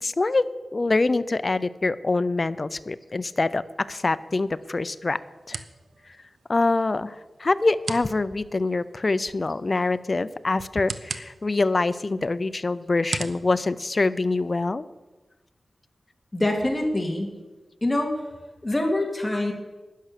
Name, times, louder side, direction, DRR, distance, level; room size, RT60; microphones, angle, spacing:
voice 1, 0.0-5.2 5.5-5.6 6.5-14.9, left 3 dB, 35° left, 14 dB, 0.5 m, -25 dB
sound 1, 3.7-14.7, right 4 dB, 85° right, 0.8 m, -41 dB
voice 2, 16.3-17.3 17.8-18.1 18.6-19.5, left 1 dB, 20° left, 2 dB, 2.3 m, -24 dB
12.0 x 10.0 x 6.7 m, 1.2 s
wide cardioid pair, 115°, 0 cm